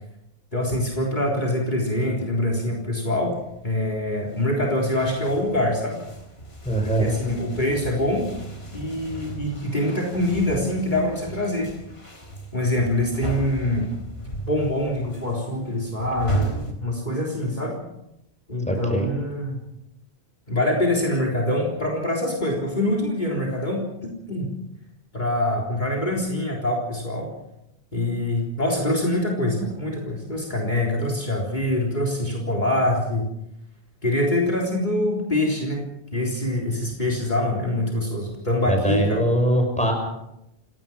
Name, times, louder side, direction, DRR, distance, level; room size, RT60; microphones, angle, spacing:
voice 1, 0.5-3.4 3.6-6.0 6.8-8.3 8.7-11.7 12.5-13.9 14.4-17.8 18.5-19.6 20.5-24.5 25.1-27.3 27.9-33.3 34.0-35.9 36.1-39.2, left 1 dB, 45° left, 0 dB, 4.0 m, -24 dB
sound 1, 3.0-4.5 4.7-16.7, right 2 dB, 65° left, 4.5 m, -35 dB
voice 2, 6.6-7.1 18.7-19.1 29.6-29.7 38.6-39.9, right 1 dB, 5° left, 3 dB, 6.2 m, -22 dB
27.5 x 18.5 x 6.2 m, 0.85 s
omnidirectional pair, 1.1 m